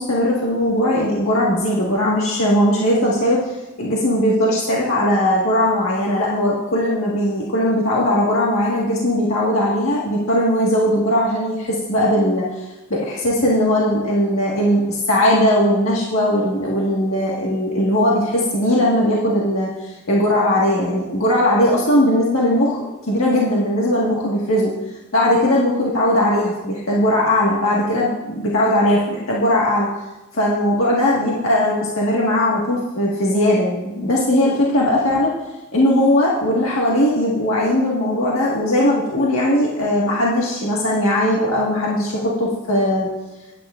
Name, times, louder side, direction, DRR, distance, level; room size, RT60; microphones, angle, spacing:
voice 1, 0.0-24.7 25.1-29.9 30.3-35.3 35.7-43.1, left 1 dB, 90° left, -5 dB, 1.7 m, -19 dB
18.0 x 9.2 x 2.5 m, 1.0 s
head